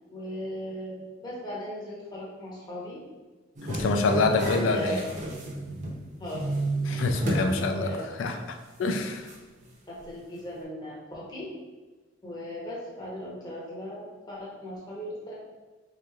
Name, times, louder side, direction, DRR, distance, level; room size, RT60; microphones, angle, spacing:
voice 1, 0.1-0.9 1.2-3.0 4.5-5.0 6.2-6.4 6.8-7.1 7.7-8.1 9.9-11.5 12.2-15.3, equal, 20° left, -6 dB, 0.7 m, -38 dB
sound 1, 3.6-6.0 6.3-7.5 7.9-8.0 9.3-9.4, right 2 dB, 40° right, 0.5 m, -32 dB
voice 2, 3.7-5.1 6.9-9.3, left 3 dB, 85° left, 5 dB, 0.4 m, -26 dB
3.6 x 3.0 x 2.3 m, 1.3 s
head